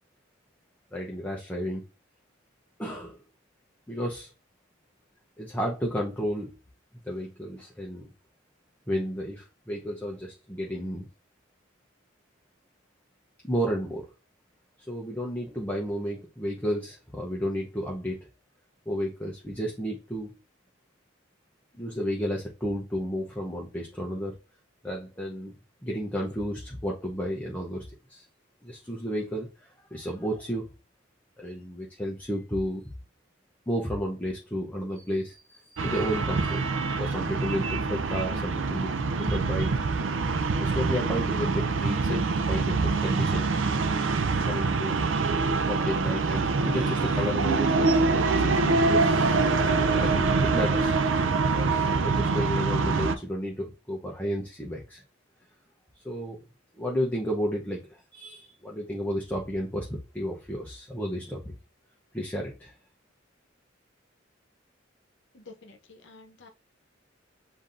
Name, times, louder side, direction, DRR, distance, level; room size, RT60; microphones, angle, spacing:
voice 1, 0.9-1.8 2.8-3.2 3.9-4.3 5.4-6.6 7.0-8.1 8.9-11.1 13.4-14.1 14.9-18.2 18.9-20.3 21.7-24.4 24.8-25.6 25.8-28.2 28.6-30.7 31.4-32.8 33.7-36.6 37.0-38.9 39.2-39.8 40.6-43.5 44.1-45.1 45.7-49.4 50.0-50.9 51.6-55.0 55.9-56.5 56.8-61.5 62.1-62.7, equal, 10° left, -2 dB, 0.7 m, -32 dB
sound 1, 35.8-53.2, right 4 dB, 70° right, 0.5 m, -25 dB
voice 2, 65.3-66.5, left 3 dB, 65° left, 5 dB, 0.8 m, -50 dB
7.1 x 2.6 x 2.5 m, 0.31 s
head